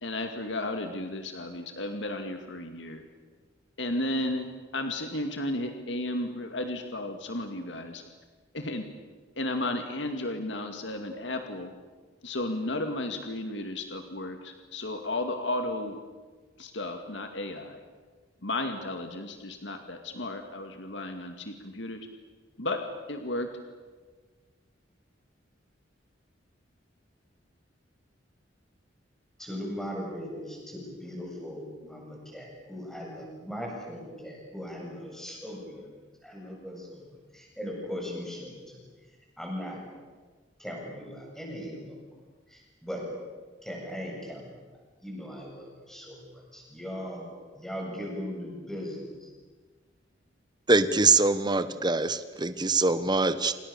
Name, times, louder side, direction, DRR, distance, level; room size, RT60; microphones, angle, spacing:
voice 1, 0.0-3.0 3.8-4.5 4.7-8.0 8.5-8.9 9.4-11.7 12.2-16.0 16.6-17.8 18.4-22.1 22.6-22.8 23.1-23.5, left 1 dB, 70° left, 5 dB, 2.2 m, -33 dB
voice 2, 29.4-35.9 36.2-37.0 37.3-38.8 39.4-39.8 40.6-42.0 42.5-43.1 43.6-44.5 45.0-47.3 47.5-49.3, equal, ahead, -2 dB, 7.9 m, -39 dB
voice 3, 50.7-53.5, right 3 dB, 25° right, 12 dB, 1.2 m, -23 dB
28.0 x 28.0 x 7.0 m, 1.4 s
head